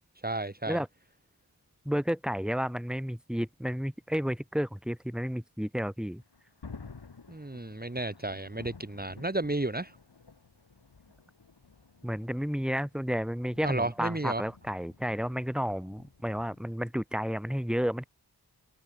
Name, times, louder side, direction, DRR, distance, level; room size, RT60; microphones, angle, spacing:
voice 1, 0.2-0.8 7.3-10.0 13.6-14.4, right 2 dB, 25° right, 2.3 m, -32 dB
voice 2, 1.9-6.2 12.0-18.0, equal, ahead, 3.9 m, -31 dB
Thunder, 6.0-16.7, left 4 dB, 80° left, 3.5 m, -52 dB
wide cardioid pair, 45°, 39 cm